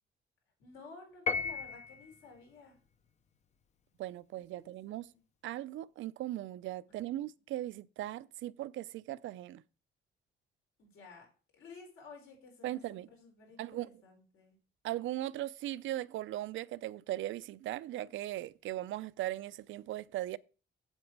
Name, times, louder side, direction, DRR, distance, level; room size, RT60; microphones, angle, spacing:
voice 1, 0.6-2.8 4.6-5.2 7.2-7.3 10.8-11.3 11.5-12.8 13.1-14.6, left 4 dB, 80° left, 4.6 m, -54 dB
Piano, 1.3-2.2, left 4 dB, 35° left, 0.5 m, -34 dB
voice 2, 4.0-5.1 5.4-9.6 12.6-13.1 13.6-13.9 14.8-20.4, right 14 dB, 75° right, 0.4 m, -38 dB
8.1 x 8.0 x 4.6 m
cardioid pair, 180°, 21 cm